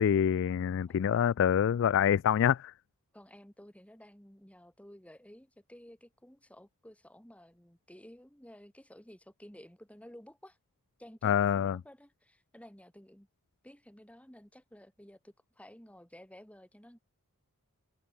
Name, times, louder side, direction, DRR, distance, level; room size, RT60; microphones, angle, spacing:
voice 1, 0.0-2.7 11.2-11.8, left 8 dB, 55° left, 0.3 m, -26 dB
voice 2, 3.1-10.6 11.0-13.3 13.6-17.1, equal, 5° left, 2.9 m, -54 dB
open air
head